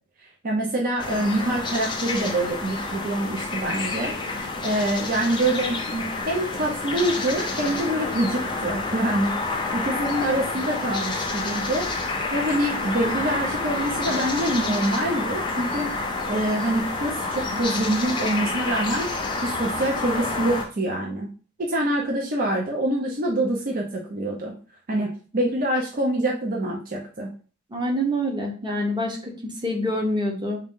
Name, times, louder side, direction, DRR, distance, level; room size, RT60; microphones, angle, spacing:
voice 1, 0.4-4.1 4.6-11.9 12.3-15.9 16.3-19.1 19.4-21.3 21.6-24.5 24.9-27.3, right 1 dB, 45° right, 0 dB, 0.6 m, -25 dB
sound 1, 1.0-20.7, left 3 dB, 20° left, 0.6 m, -29 dB
voice 2, 27.7-30.6, equal, 20° right, 1 dB, 0.9 m, -26 dB
4.1 x 2.5 x 3.6 m, 0.38 s
head